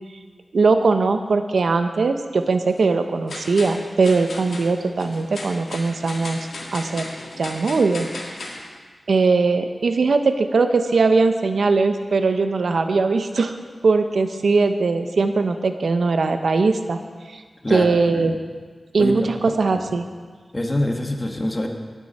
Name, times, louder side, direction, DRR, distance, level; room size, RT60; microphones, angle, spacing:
voice 1, 0.5-6.4 6.7-7.1 7.4-8.1 9.1-13.5 13.8-17.0 17.3-17.4 17.7-18.4 18.9-20.0, right 4 dB, 85° right, 7 dB, 0.7 m, -20 dB
sound 1, 2.4-2.8 3.3-8.6, left 2 dB, 90° left, 1.8 m, -36 dB
voice 2, 17.6-18.3 19.0-19.9 20.5-21.7, left 1 dB, 25° left, 3 dB, 1.5 m, -26 dB
17.5 x 8.3 x 4.2 m, 1.5 s
wide cardioid pair, 80°, 0 cm